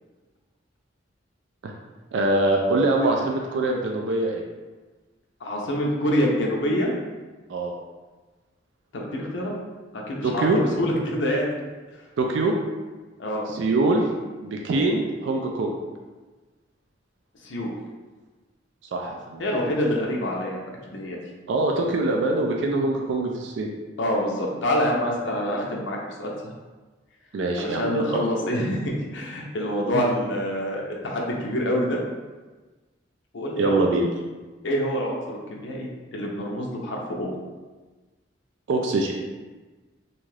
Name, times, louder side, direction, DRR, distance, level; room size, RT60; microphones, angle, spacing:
voice 1, 2.1-4.4 7.5-7.7 10.2-10.6 12.2-12.5 13.5-14.1 14.4-15.8 18.9-19.4 21.5-23.7 27.3-28.1 29.9-30.0 33.6-34.1 38.7-39.1, right 2 dB, 70° right, 1 dB, 0.3 m, -23 dB
voice 2, 5.4-6.9 8.9-9.5 9.9-11.5 13.2-13.4 17.4-17.7 19.4-20.6 20.9-21.2 24.0-26.3 27.6-32.0 33.3-33.8 34.6-37.3, equal, 75° left, -2 dB, 0.6 m, -26 dB
2.6 x 2.4 x 3.2 m, 1.3 s
head